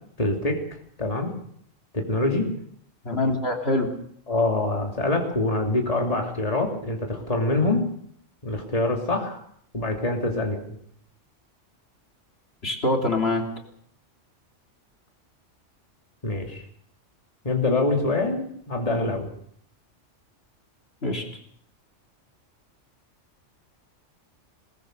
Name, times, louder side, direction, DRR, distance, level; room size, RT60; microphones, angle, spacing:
voice 1, 0.2-0.6 1.0-1.3 1.9-2.5 4.3-7.9 8.4-9.4 9.7-10.7 16.2-16.6 17.4-19.3, left 2 dB, 30° left, 1 dB, 3.0 m, -25 dB
voice 2, 3.0-3.9 12.6-13.4 21.0-21.2, left 2 dB, 55° left, 2 dB, 3.4 m, -24 dB
21.0 x 20.5 x 6.7 m, 0.65 s
omnidirectional pair, 1.3 m